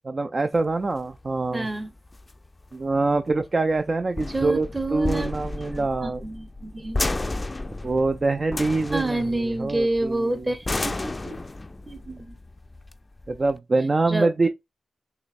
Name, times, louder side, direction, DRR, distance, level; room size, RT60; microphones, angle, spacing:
voice 1, 0.1-1.7 2.7-6.2 7.8-10.5 13.3-14.5, right 3 dB, 40° right, 0.4 m, -25 dB
sound 1, 0.6-13.6, left 2 dB, 30° left, 0.4 m, -33 dB
voice 2, 1.5-1.9 4.3-5.3 5.6-7.0 8.9-11.4 11.9-12.4 14.1-14.5, right 2 dB, 25° right, 1.0 m, -29 dB
5.6 x 3.2 x 2.5 m
cardioid pair, 55°, 0 cm